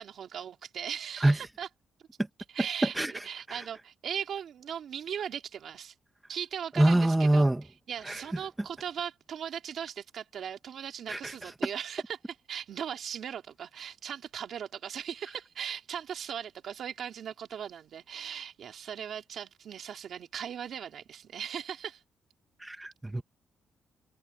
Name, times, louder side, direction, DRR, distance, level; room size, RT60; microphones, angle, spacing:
voice 1, 0.0-1.7 2.5-5.9 6.3-7.5 7.9-22.0, right 8 dB, 60° right, 2.9 m, -38 dB
voice 2, 6.8-7.6 8.0-8.2 11.1-11.3 22.6-23.2, right 1 dB, 10° right, 1.1 m, -25 dB
cardioid pair, 120°, 0 cm